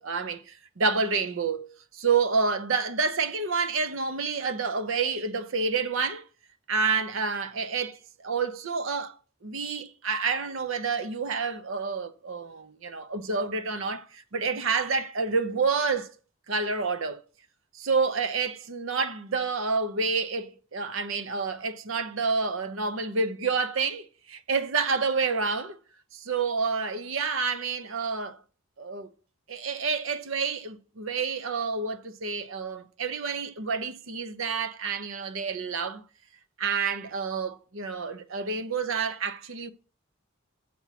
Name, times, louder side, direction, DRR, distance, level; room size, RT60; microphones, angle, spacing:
voice 1, 0.0-6.2 6.7-9.2 9.4-16.1 16.5-17.2 17.7-25.8 26.1-28.4 28.8-29.1 29.5-36.0 36.6-39.7, right 4 dB, 70° right, 0.7 m, -29 dB
7.1 x 6.0 x 5.7 m
head